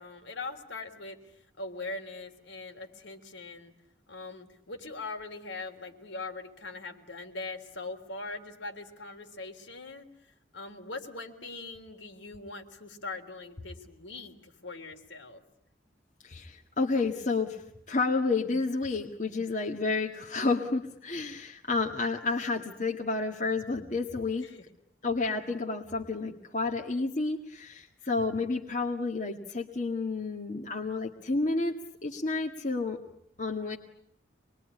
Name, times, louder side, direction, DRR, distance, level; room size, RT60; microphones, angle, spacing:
voice 1, 0.0-3.7 4.1-15.4 24.4-24.6, left 3 dB, 85° left, 4 dB, 3.4 m, -41 dB
voice 2, 16.2-17.6 17.9-24.5 25.0-31.7 32.0-33.0 33.4-33.8, left 3 dB, 40° left, 0 dB, 1.9 m, -30 dB
26.5 x 21.5 x 9.8 m, 0.72 s
head